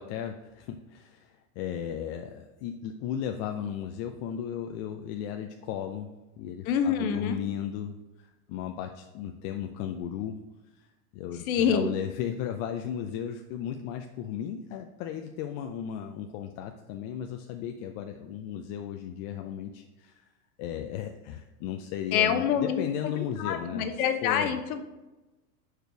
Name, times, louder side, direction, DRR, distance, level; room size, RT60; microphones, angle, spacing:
voice 1, 0.0-6.1 6.4-10.3 10.8-10.9 11.1-20.2 20.6-24.6, left 9 dB, 40° left, 5 dB, 0.5 m, -35 dB
voice 2, 6.7-7.4 11.5-11.9 22.1-24.8, left 7 dB, 70° left, 8 dB, 0.9 m, -26 dB
5.0 x 4.7 x 4.5 m, 1.1 s
hypercardioid pair, 115°, 44 cm